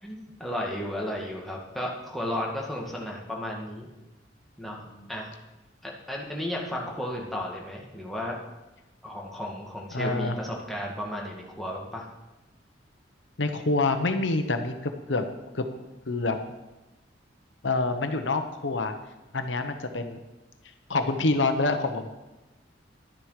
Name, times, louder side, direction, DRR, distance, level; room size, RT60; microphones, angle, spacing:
voice 1, 0.0-3.9 4.6-5.3 5.8-8.4 9.0-12.1, left 1 dB, ahead, -3 dB, 1.9 m, -34 dB
voice 2, 9.9-10.4 13.4-15.2 15.5-15.7 16.1-16.4 17.6-18.9 19.3-20.2 20.9-22.1, left 3 dB, 90° left, 7 dB, 1.1 m, -26 dB
11.5 x 9.9 x 4.9 m, 1.0 s
head